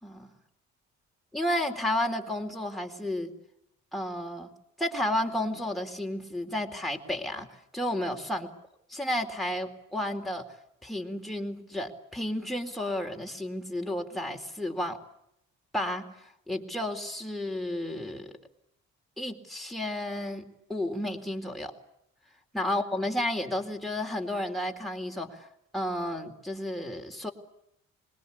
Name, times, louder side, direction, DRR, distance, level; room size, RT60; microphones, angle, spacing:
voice 1, 0.0-0.3 1.3-3.3 3.9-4.5 4.8-8.5 8.9-10.4 10.8-15.0 15.7-18.3 19.2-21.7 22.5-25.5 25.7-27.3, left 1 dB, ahead, 1 dB, 3.8 m, -32 dB
26.0 x 21.5 x 8.6 m, 0.76 s
cardioid pair, 90°, 30 cm